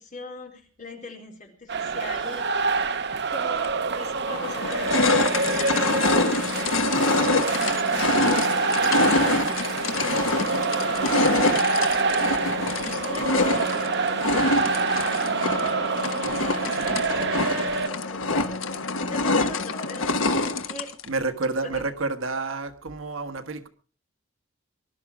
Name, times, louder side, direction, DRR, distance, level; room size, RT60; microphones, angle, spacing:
voice 1, 0.0-2.6 3.3-12.3 12.9-14.6 15.2-21.0 21.6-21.8, left 2 dB, 40° left, 4.2 m, -42 dB
sound 1, 1.7-17.9, right 4 dB, 55° right, 0.9 m, -26 dB
sound 2, 3.6-3.7 4.3-21.1, left 3 dB, 75° left, 1.4 m, -25 dB
voice 2, 21.0-23.7, right 3 dB, 75° right, 1.4 m, -29 dB
20.5 x 12.0 x 4.9 m
head